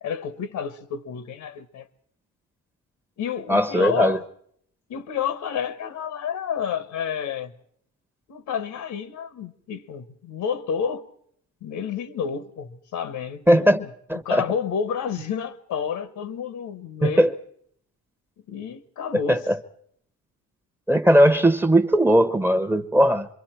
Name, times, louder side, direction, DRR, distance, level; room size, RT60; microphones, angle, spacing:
voice 1, 0.0-1.9 3.2-4.2 4.9-7.5 8.3-11.1 11.6-17.3 18.5-19.4, left 7 dB, 75° left, 1.3 m, -30 dB
voice 2, 3.5-4.2 13.5-13.8 14.1-14.4 17.0-17.3 19.3-19.6 20.9-23.3, equal, 5° right, 0.9 m, -18 dB
26.5 x 22.5 x 4.5 m
cardioid pair, 90°, 30 cm